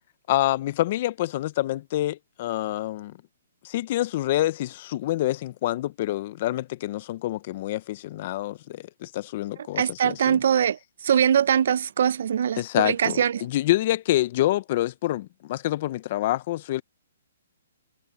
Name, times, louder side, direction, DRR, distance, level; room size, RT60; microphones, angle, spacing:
voice 1, 0.3-3.1 3.6-10.4 12.6-16.8, left 15 dB, 45° left, 1.0 m, -27 dB
voice 2, 9.8-13.4, right 8 dB, 60° right, 0.7 m, -22 dB
hypercardioid pair, 140°, 0 cm